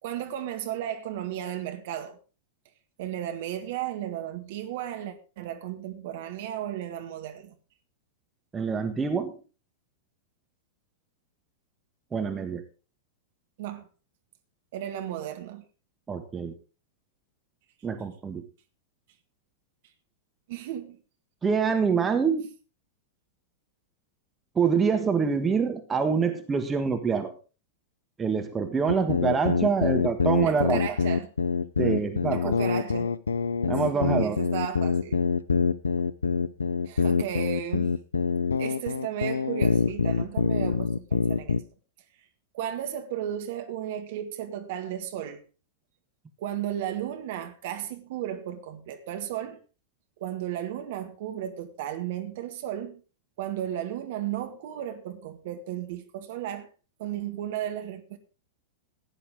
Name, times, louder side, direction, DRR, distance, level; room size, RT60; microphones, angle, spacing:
voice 1, 0.0-2.2 3.0-7.6 13.6-13.9 14.7-15.6 20.5-21.0 21.5-21.6 30.4-31.3 32.3-33.1 33.9-35.3 36.9-38.0 38.6-41.6 42.5-45.4 46.4-49.6 50.2-53.0 53.4-56.7 57.0-58.2, right 11 dB, 50° right, 1.9 m, -34 dB
voice 2, 8.5-9.3 12.1-12.6 16.1-16.5 17.8-18.4 21.4-22.5 24.5-27.3 28.2-30.8 31.8-32.5 33.7-34.4, right 5 dB, 15° right, 1.6 m, -26 dB
sound 1, 28.9-41.6, left 5 dB, 75° left, 0.6 m, -25 dB
16.0 x 10.0 x 3.8 m
figure-of-eight pair, 95°, 0 cm